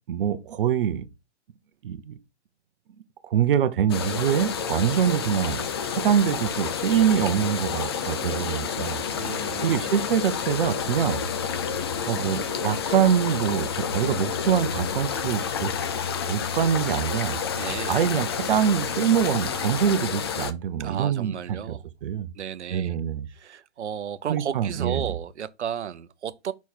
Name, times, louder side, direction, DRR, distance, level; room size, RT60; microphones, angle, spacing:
voice 1, 0.1-1.0 1.8-2.2 3.2-5.6 5.9-9.0 9.6-11.2 12.1-15.7 16.3-17.4 17.9-22.3 22.7-23.3 24.3-25.1, right 9 dB, 50° right, 0.9 m, -24 dB
sound 1, 3.9-20.5, left 7 dB, 25° left, 0.4 m, -29 dB
voice 2, 9.1-9.9 17.6-18.0 20.8-21.8 22.3-23.0 23.3-26.5, right 9 dB, 75° right, 0.7 m, -34 dB
5.8 x 4.6 x 4.4 m
hypercardioid pair, 140°, 34 cm